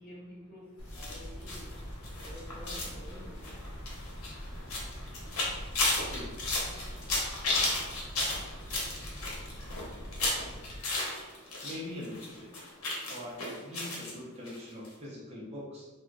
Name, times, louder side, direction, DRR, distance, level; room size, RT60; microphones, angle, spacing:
voice 1, 0.0-6.1 6.9-7.0, equal, 45° left, -8 dB, 1.2 m, -52 dB
sound 1, 0.8-10.8, equal, 60° left, 1.1 m, -44 dB
sound 2, 0.9-11.8 12.0-14.1 14.5-14.6 14.9-15.0, left 2 dB, 90° left, 0.8 m, -34 dB
voice 2, 11.6-12.6 13.1-15.9, left 1 dB, 30° right, -5 dB, 0.6 m, -42 dB
2.9 x 2.3 x 2.5 m, 1.2 s
head